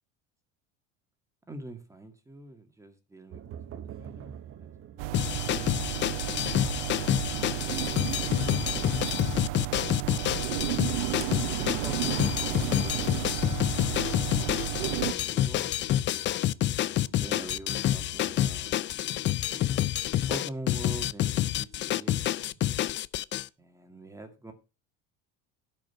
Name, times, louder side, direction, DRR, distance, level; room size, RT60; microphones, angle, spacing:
voice 1, 1.5-3.4 3.7-4.7 8.5-9.3 11.5-15.7 17.1-18.7 19.5-19.9 20.3-22.6 23.6-24.5, right 2 dB, 10° right, 2.1 m, -45 dB
sound 1, 3.3-18.8, right 9 dB, 40° right, 1.1 m, -49 dB
sound 2, 5.0-15.1, right 18 dB, 80° right, 0.6 m, -32 dB
sound 3, 5.1-23.5, left 13 dB, 35° left, 0.4 m, -28 dB
12.0 x 5.3 x 5.8 m
supercardioid pair, 110°, 34 cm